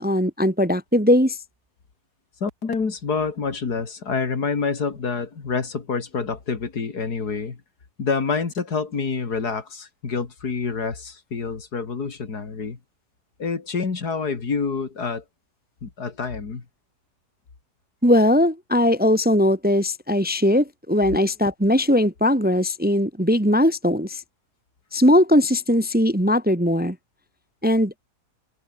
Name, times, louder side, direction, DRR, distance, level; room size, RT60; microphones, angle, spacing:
voice 1, 0.0-1.4 18.0-24.2 24.9-27.0 27.6-28.0, left 1 dB, 5° right, 1.1 m, -19 dB
voice 2, 2.4-7.6 8.0-12.8 13.4-15.2 15.8-16.6, left 5 dB, 80° left, 3.1 m, -27 dB
omnidirectional pair, 1.7 m